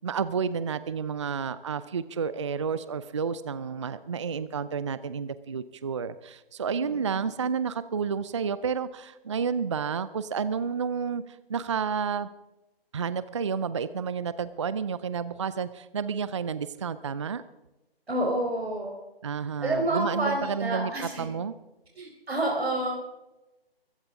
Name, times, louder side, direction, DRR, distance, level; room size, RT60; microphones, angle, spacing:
voice 1, 0.0-12.3 12.9-17.4 19.2-20.9 21.2-21.5, right 6 dB, 30° right, 15 dB, 0.5 m, -30 dB
voice 2, 6.8-7.3 18.1-19.0 19.6-21.3 21.9-23.0, right 1 dB, 85° right, 0 dB, 4.2 m, -29 dB
21.5 x 15.5 x 3.7 m, 0.99 s
figure-of-eight pair, 155°, 30 cm